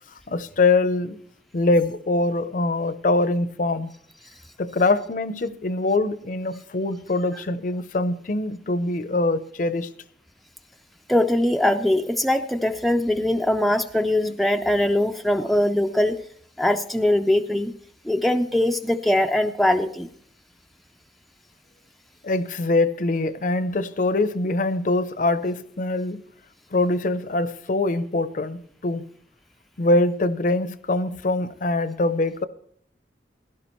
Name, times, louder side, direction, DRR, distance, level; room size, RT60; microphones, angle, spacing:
voice 1, 0.3-1.2 1.5-3.9 4.6-9.9 22.2-26.2 26.7-29.0 29.8-32.4, left 2 dB, 50° left, 0.6 m, -23 dB
voice 2, 11.1-16.2 16.6-17.7 18.0-20.1, left 1 dB, ahead, 0.4 m, -21 dB
16.5 x 12.0 x 3.0 m
head